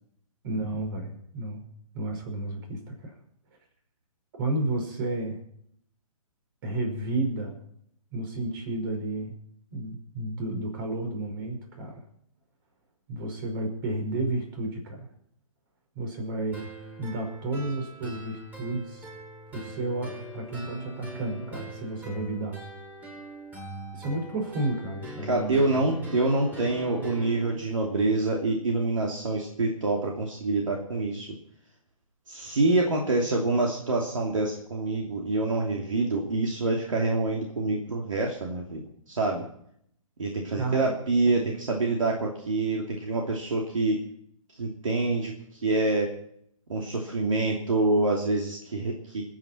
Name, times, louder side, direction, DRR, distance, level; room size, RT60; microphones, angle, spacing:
voice 1, 0.4-1.6 1.9-3.2 4.4-5.4 6.6-7.6 8.1-9.3 9.7-12.0 13.1-15.1 15.9-16.6 17.0-19.1 19.5-22.6 23.9-25.9 40.6-40.9 41.3-41.5, right 2 dB, 40° right, 4 dB, 5.2 m, -32 dB
sound 1, 16.5-27.5, right 1 dB, 10° right, 6.2 m, -41 dB
voice 2, 25.2-31.3 32.3-39.5 40.2-44.0 44.6-46.1 46.7-49.2, right 2 dB, 65° right, -1 dB, 2.8 m, -26 dB
27.5 x 9.2 x 4.4 m, 0.69 s
figure-of-eight pair, 130°, 18 cm